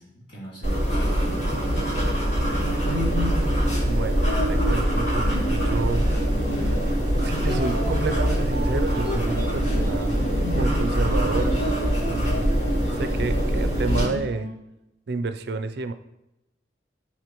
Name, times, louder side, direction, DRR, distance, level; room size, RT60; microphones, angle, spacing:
voice 1, 0.0-2.0 2.4-3.3, right 1 dB, 30° left, -7 dB, 2.5 m, -41 dB
sound 1, 0.6-14.0, equal, 85° left, 2.9 m, -23 dB
sound 2, 2.6-14.5, equal, 50° left, 1.7 m, -33 dB
voice 2, 3.8-6.1 7.2-10.2 10.5-11.7 12.1-12.5 12.9-14.5 15.1-15.9, right 3 dB, 60° right, 10 dB, 0.4 m, -30 dB
11.5 x 4.1 x 3.0 m, 0.90 s
head